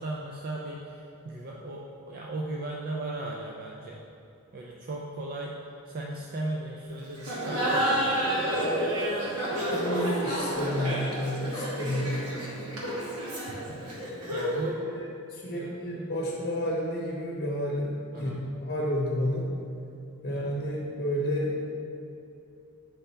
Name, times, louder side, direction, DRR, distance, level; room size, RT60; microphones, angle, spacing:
voice 1, 0.0-4.0 4.5-5.6 5.9-8.5 13.7-14.0 14.3-14.8 15.5-16.1 18.1-18.4 20.3-20.5, right 2 dB, 40° right, -2 dB, 0.4 m, -37 dB
Laughter, 7.2-14.7, equal, 85° right, 1.3 m, -30 dB
voice 2, 9.6-12.1 14.7-19.5 20.2-21.8, equal, 45° left, -3 dB, 0.8 m, -31 dB
7.6 x 3.4 x 4.3 m, 2.7 s
head